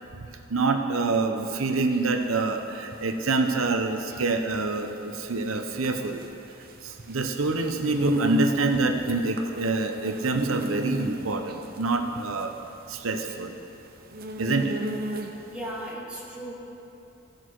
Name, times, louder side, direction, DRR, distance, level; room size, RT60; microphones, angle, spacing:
voice 1, 0.5-6.2 6.8-12.5 12.9-13.6 14.4-14.8, right 3 dB, 85° right, 5 dB, 0.9 m, -26 dB
sound 1, 1.4-15.6, right 1 dB, 45° right, 0.7 m, -33 dB
voice 2, 15.3-16.5, right 1 dB, 5° right, -6 dB, 2.2 m, -37 dB
16.0 x 6.5 x 4.6 m, 2.9 s
head